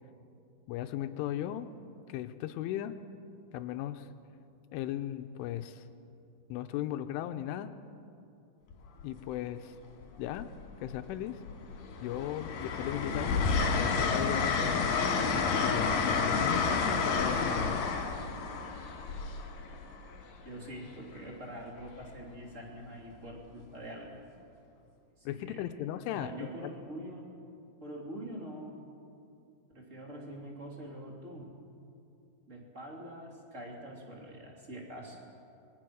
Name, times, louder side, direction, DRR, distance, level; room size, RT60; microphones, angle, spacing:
voice 1, 0.7-1.7 2.1-3.0 3.5-4.1 4.7-5.8 6.5-7.7 9.0-9.7 10.2-10.5 10.8-11.4 12.0-13.5 13.8-14.9 15.6-17.9 25.3-26.7, left 12 dB, 80° left, 9 dB, 3.0 m, -37 dB
Train, 8.7-9.0 10.3-11.0 11.5-20.2 21.8-22.1, left 5 dB, 55° left, 3.1 m, -30 dB
voice 2, 20.4-24.3 25.2-25.7 26.1-27.3 27.8-28.8 29.7-31.5 32.5-35.2, right 1 dB, 20° right, -1 dB, 2.6 m, -44 dB
26.5 x 22.0 x 6.3 m, 2.6 s
omnidirectional pair, 5.9 m